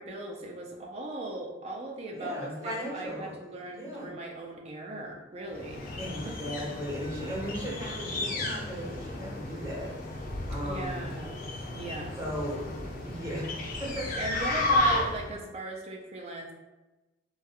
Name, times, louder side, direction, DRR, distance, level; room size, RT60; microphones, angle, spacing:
voice 1, 0.0-5.9 6.2-6.8 10.6-11.4 11.7-12.1 14.2-16.5, right 2 dB, 35° right, 0 dB, 0.3 m, -38 dB
voice 2, 2.1-3.3 3.7-4.1 6.0-9.9 10.5-11.1 12.2-13.5 13.8-14.6 14.9-15.0, equal, 15° right, -5 dB, 0.7 m, -37 dB
sound 1, 5.5-15.4, left 1 dB, 50° left, 0.4 m, -33 dB
2.4 x 2.3 x 2.7 m, 1.1 s
head